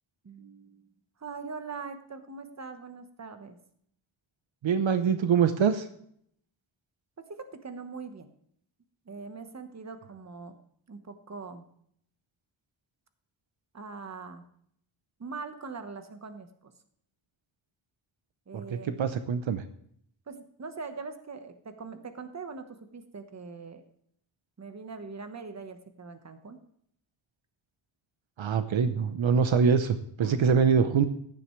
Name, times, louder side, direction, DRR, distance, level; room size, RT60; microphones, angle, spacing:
voice 1, 0.2-0.9 1.2-3.6 7.2-8.3 9.0-10.6 10.9-11.7 13.7-14.5 15.2-16.7 18.5-19.0 20.3-23.8 24.6-26.6 30.2-30.5, right 4 dB, 35° right, 8 dB, 1.2 m, -42 dB
voice 2, 4.6-5.9 18.5-19.6 28.4-31.0, right 6 dB, 70° right, 10 dB, 0.9 m, -24 dB
15.5 x 10.5 x 3.2 m, 0.67 s
wide cardioid pair, 140°, 48 cm